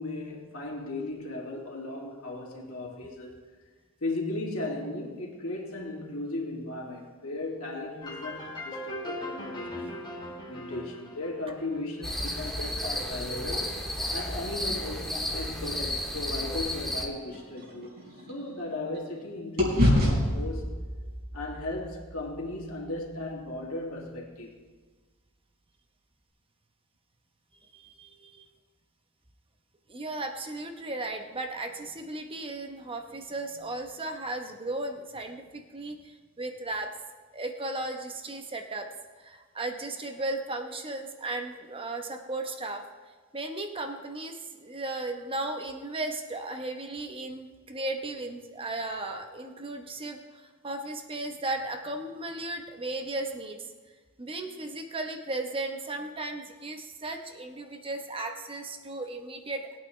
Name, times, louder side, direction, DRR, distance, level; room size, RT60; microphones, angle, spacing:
voice 1, 0.0-3.4 4.0-9.9 10.5-13.7 14.1-17.9 18.3-20.8 21.3-24.5, left 2 dB, 75° left, -1 dB, 2.3 m, -36 dB
sound 1, 8.0-12.6, left 1 dB, 20° left, 2.1 m, -40 dB
sound 2, 12.0-17.1, left 1 dB, ahead, 1.7 m, -32 dB
sound 3, 16.9-19.2 19.6-23.8, left 1 dB, 45° right, 4.4 m, -29 dB
voice 2, 27.7-28.4 29.9-36.9 37.3-38.9 39.2-42.8 43.3-53.6 54.2-59.7, right 2 dB, 25° right, 5 dB, 1.0 m, -36 dB
21.0 x 8.9 x 3.3 m, 1.4 s
head